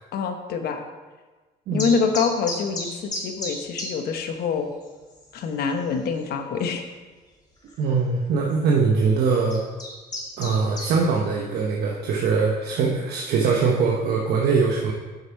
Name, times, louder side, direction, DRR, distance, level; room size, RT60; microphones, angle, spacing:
voice 1, 0.1-0.8 1.7-4.7 5.3-6.9, left 5 dB, 65° left, 6 dB, 1.0 m, -25 dB
sound 1, 1.8-3.9 4.2-4.3 4.8-4.9 5.2-5.6 6.2-6.3 7.6-7.7 8.5-8.7 9.3-10.9, left 2 dB, 25° left, 2.4 m, -32 dB
voice 2, 7.8-9.6 10.4-14.9, right 5 dB, 70° right, -1 dB, 1.0 m, -22 dB
7.6 x 5.9 x 4.6 m, 1.3 s
cardioid pair, 110°, 17 cm